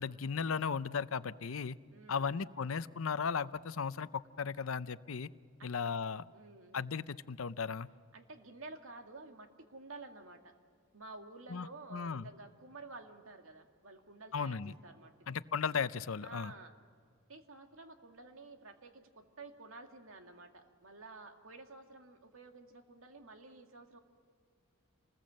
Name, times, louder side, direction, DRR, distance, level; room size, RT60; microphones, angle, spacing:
voice 1, 0.0-1.8 2.1-5.3 5.6-6.2 6.7-7.9 11.5-12.2 14.3-14.7 15.3-16.5, left 6 dB, 80° left, 15 dB, 0.6 m, -36 dB
voice 2, 1.9-2.5 5.6-5.7 6.3-6.9 8.1-10.5 10.9-15.1 16.2-16.7 17.3-24.0, right 3 dB, 80° right, 4 dB, 2.2 m, -52 dB
28.5 x 20.5 x 7.6 m, 2.1 s
head